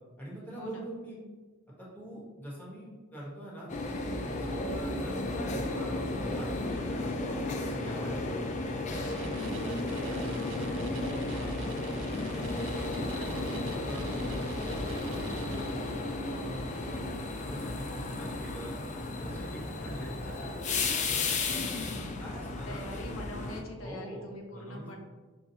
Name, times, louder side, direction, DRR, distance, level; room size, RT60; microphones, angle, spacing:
voice 1, 0.2-1.2 1.8-5.2 5.5-8.4 8.9-11.5 12.1-17.0 17.5-18.7 19.2-21.1 22.2-22.8 23.8-25.0, right 1 dB, 10° left, -7 dB, 1.1 m, -44 dB
sound 1, 3.7-23.6, left 2 dB, 35° left, 0.3 m, -34 dB
sound 2, 8.9-16.2, right 7 dB, 65° right, 0.3 m, -49 dB
voice 2, 9.2-9.5 16.9-17.2 21.5-22.2 22.7-25.0, left 1 dB, 90° left, 1 dB, 0.6 m, -43 dB
5.4 x 2.3 x 2.7 m, 1.4 s
head